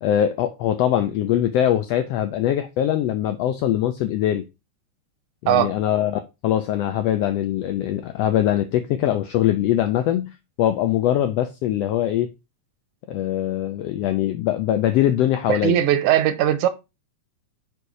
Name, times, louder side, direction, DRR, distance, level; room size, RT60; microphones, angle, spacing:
voice 1, 0.0-4.4 5.4-10.3 10.6-12.3 13.1-15.8, left 11 dB, 90° left, 1.4 m, -22 dB
voice 2, 15.5-16.7, right 11 dB, 85° right, 2.1 m, -19 dB
5.4 x 4.5 x 4.7 m
omnidirectional pair, 3.4 m